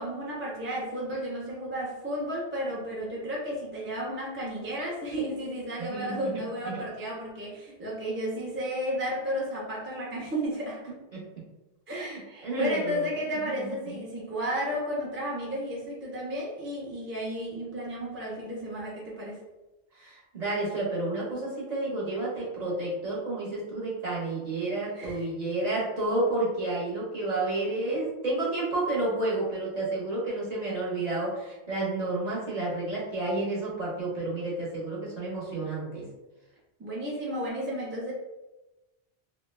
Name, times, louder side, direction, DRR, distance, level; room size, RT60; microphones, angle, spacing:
voice 1, 0.0-10.8 11.9-19.4 24.9-25.2 36.8-38.1, equal, 15° right, -6 dB, 0.4 m, -33 dB
voice 2, 5.8-6.4 6.6-6.8 11.1-11.2 11.9-13.1 13.4-14.0 19.9-36.0, right 2 dB, 40° right, -6 dB, 1.0 m, -31 dB
2.8 x 2.2 x 3.2 m, 1.0 s
omnidirectional pair, 1.1 m